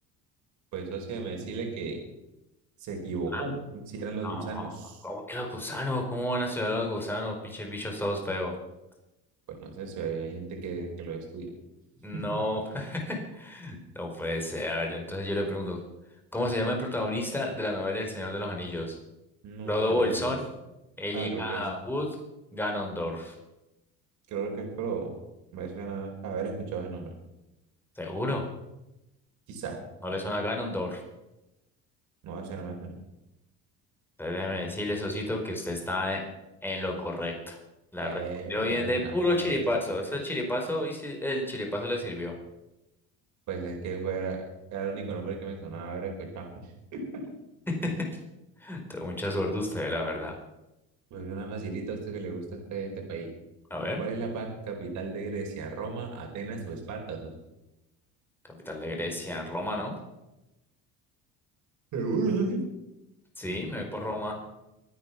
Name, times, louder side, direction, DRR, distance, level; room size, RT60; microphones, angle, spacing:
voice 1, 0.7-2.0 2.8-5.0 9.5-11.5 12.1-12.4 19.4-20.3 21.1-21.6 24.3-25.1 25.5-27.1 29.5-29.8 32.2-32.9 38.0-39.6 43.5-44.4 44.7-47.3 51.1-53.3 54.0-57.3 61.9-62.6, right 4 dB, 65° right, 1 dB, 4.7 m, -34 dB
voice 2, 4.2-4.7 5.0-8.5 12.0-15.8 16.3-19.0 19.6-20.4 21.0-22.1 22.5-23.3 28.0-28.4 30.0-31.0 34.2-36.2 36.6-37.6 37.9-38.2 38.5-42.3 47.7-48.1 48.6-50.4 53.7-54.0 58.6-59.9 63.4-64.4, left 1 dB, 5° left, 1 dB, 4.6 m, -31 dB
24.5 x 9.6 x 5.9 m, 0.95 s
cardioid pair, 125°, 32 cm